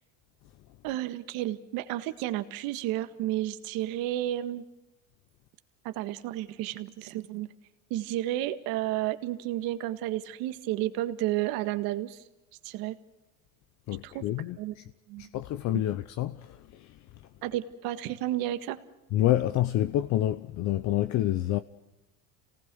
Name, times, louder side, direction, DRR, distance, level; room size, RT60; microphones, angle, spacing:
voice 1, 0.8-4.6 5.9-7.5 7.9-12.2 12.6-13.0 14.0-14.2 14.6-14.7 15.1-15.3 15.7-15.8 17.4-18.8, right 14 dB, 70° right, 1.8 m, -32 dB
voice 2, 13.9-14.8 15.2-16.9 19.1-21.6, left 13 dB, 50° left, 0.8 m, -28 dB
28.0 x 19.0 x 6.2 m
cardioid pair, 135°, 37 cm